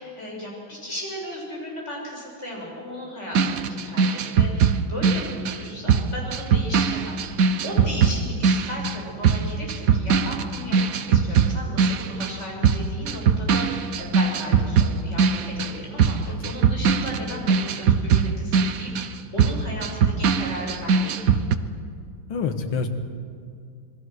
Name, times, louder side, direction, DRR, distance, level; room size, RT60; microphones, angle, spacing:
voice 1, 0.0-7.4 7.6-10.8 11.1-21.2, equal, 35° left, -3 dB, 6.8 m, -36 dB
sound 1, 3.3-12.4 12.6-21.6, right 6 dB, 55° right, 1.1 m, -21 dB
voice 2, 22.3-22.9, left 5 dB, 90° left, 6 dB, 2.4 m, -27 dB
27.0 x 21.5 x 6.4 m, 2.2 s
omnidirectional pair, 2.2 m